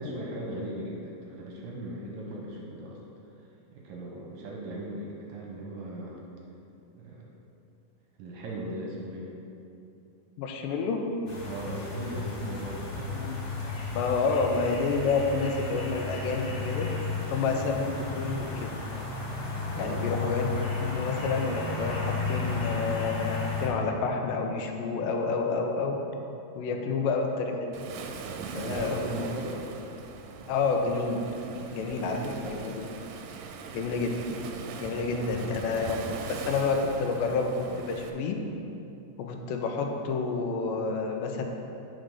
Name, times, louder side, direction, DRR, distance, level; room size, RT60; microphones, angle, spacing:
voice 1, 0.0-3.0 3.7-6.2 6.9-7.3 8.2-9.3 11.4-13.2 19.7-20.1 26.7-26.9 28.4-29.6 31.7-32.6 34.8-35.5, right 1 dB, 70° right, -1 dB, 2.0 m, -38 dB
voice 2, 10.4-11.0 13.1-13.4 13.9-16.9 17.3-18.7 19.8-20.5 20.8-22.0 22.3-26.0 26.6-27.8 28.5-29.2 30.5-31.3 31.7-32.2 32.6-32.8 33.7-34.4 34.8-36.0 36.4-38.4 39.2-41.4, left 4 dB, 85° left, 3 dB, 2.4 m, -29 dB
sound 1, 11.3-23.7, left 4 dB, 55° left, 1.7 m, -33 dB
Waves surf, 27.7-38.1, right 5 dB, 90° right, 2.3 m, -41 dB
7.5 x 5.1 x 5.3 m, 2.7 s
omnidirectional pair, 3.9 m